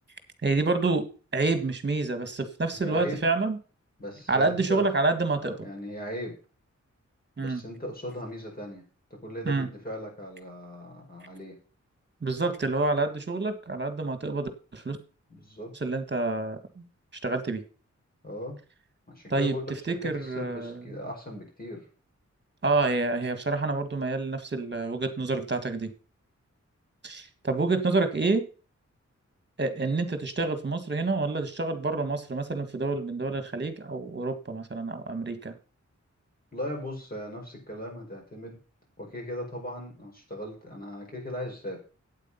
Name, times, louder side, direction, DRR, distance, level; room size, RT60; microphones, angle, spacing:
voice 1, 0.4-1.1 1.3-3.6 4.3-5.6 7.4-7.6 9.5-9.7 12.2-15.0 15.8-16.8 17.2-17.6 19.3-19.6 19.9-20.8 22.6-25.9 27.0-28.5 29.6-35.5, right 3 dB, 40° right, 9 dB, 1.7 m, -28 dB
voice 2, 2.7-3.2 4.0-4.9 5.4-6.4 7.4-8.8 9.2-11.6 15.3-15.7 18.2-18.6 19.1-21.9 36.5-38.6 39.0-41.8, equal, 30° left, 0 dB, 5.3 m, -38 dB
8.6 x 8.4 x 5.7 m, 0.35 s
wide cardioid pair, 100°, 29 cm